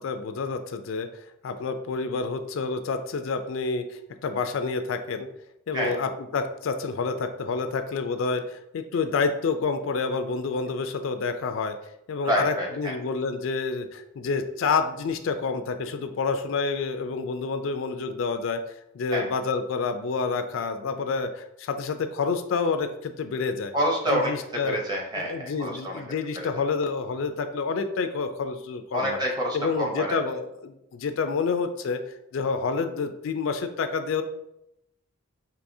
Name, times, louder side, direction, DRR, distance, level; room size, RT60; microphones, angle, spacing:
voice 1, 0.0-5.3 5.7-11.8 12.1-23.7 24.1-24.8 25.1-29.2 29.5-32.0 32.3-34.2, left 4 dB, 65° left, 8 dB, 0.3 m, -28 dB
voice 2, 12.2-12.9 19.1-19.3 23.7-26.0 26.3-26.5 28.9-30.2, equal, 20° right, 0 dB, 0.7 m, -28 dB
4.7 x 2.9 x 2.6 m, 0.83 s
head